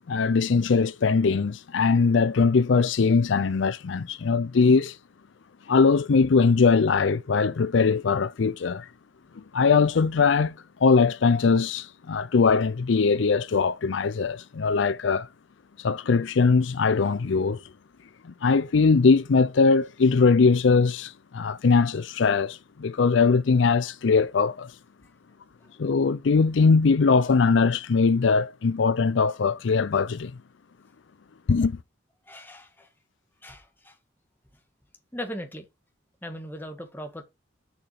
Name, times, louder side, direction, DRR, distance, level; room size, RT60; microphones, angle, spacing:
voice 1, 0.1-5.0 5.7-8.9 9.5-10.5 10.8-15.3 15.8-17.6 18.2-24.7 25.8-30.3 31.5-31.8, left 4 dB, 75° left, 0.5 m, -21 dB
voice 2, 32.3-32.9 33.4-33.9 35.1-35.7 36.2-37.2, equal, 10° left, 1.6 m, -38 dB
7.1 x 5.8 x 4.9 m
head